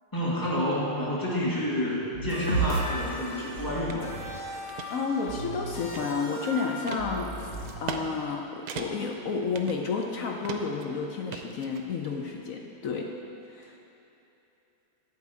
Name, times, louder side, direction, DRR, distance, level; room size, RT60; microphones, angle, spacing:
voice 1, 0.1-4.1, equal, 10° left, -5 dB, 1.6 m, -29 dB
sound 1, 2.1-7.7, right 2 dB, 40° left, 1.1 m, -34 dB
sound 2, 3.9-4.0 4.5-4.9 5.4-6.4 6.9-7.1 7.7-8.0 8.3-8.4 8.7-9.1 9.5-10.1 10.4-10.8 11.3-12.1, right 7 dB, 65° right, 0.9 m, -38 dB
voice 2, 4.9-7.5 7.8-13.1 13.5-13.8, left 5 dB, 70° left, 1 dB, 0.8 m, -31 dB
11.0 x 5.0 x 8.2 m, 3.0 s
omnidirectional pair, 2.2 m